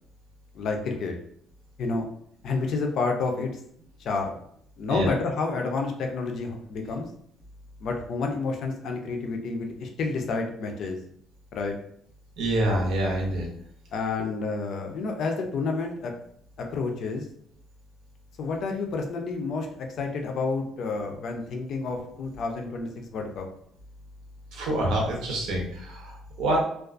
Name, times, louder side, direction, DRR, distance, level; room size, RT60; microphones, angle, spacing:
voice 1, 0.5-1.1 1.8-2.0 2.4-3.6 4.0-4.4 4.8-7.1 7.8-11.0 11.5-11.7 13.9-16.1 16.6-17.2 18.4-23.5, left 4 dB, 50° left, 3 dB, 0.4 m, -29 dB
voice 2, 12.4-13.5 24.5-26.6, right 1 dB, 90° right, -1 dB, 0.8 m, -26 dB
2.4 x 2.3 x 2.4 m, 0.68 s
cardioid pair, 175°, 0 cm